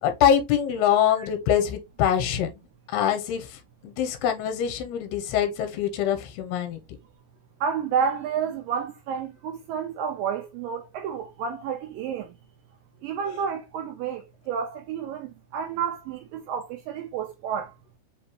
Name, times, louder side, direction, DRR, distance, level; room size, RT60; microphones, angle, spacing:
voice 1, 0.0-2.5 2.9-6.8, left 9 dB, 80° left, 2.8 m, -24 dB
voice 2, 7.6-12.3 13.0-17.7, right 7 dB, 80° right, 2.0 m, -30 dB
5.8 x 2.7 x 3.0 m
omnidirectional pair, 4.5 m